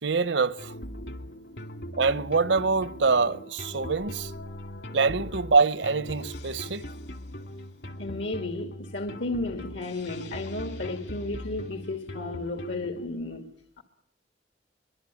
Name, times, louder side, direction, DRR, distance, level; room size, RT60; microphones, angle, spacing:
voice 1, 0.0-0.7 2.0-4.3 4.9-6.9, right 4 dB, 85° right, 1.0 m, -24 dB
sound 1, 0.6-13.1, equal, 65° left, 2.5 m, -40 dB
voice 2, 8.0-13.5 13.8-13.9, left 2 dB, 80° left, 2.5 m, -33 dB
24.0 x 24.0 x 8.6 m
head